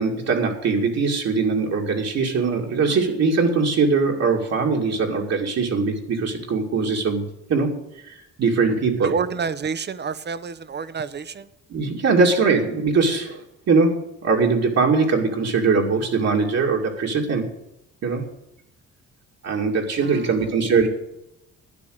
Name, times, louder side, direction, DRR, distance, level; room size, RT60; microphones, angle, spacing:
voice 1, 0.0-7.8 8.0-9.1 11.7-17.5 18.0-18.2 19.4-20.9, right 4 dB, 60° right, 0 dB, 2.4 m, -21 dB
voice 2, 9.0-11.5 20.0-20.3, right 5 dB, 35° right, 15 dB, 0.8 m, -28 dB
12.0 x 9.5 x 6.5 m, 0.86 s
cardioid pair, 90°, 30 cm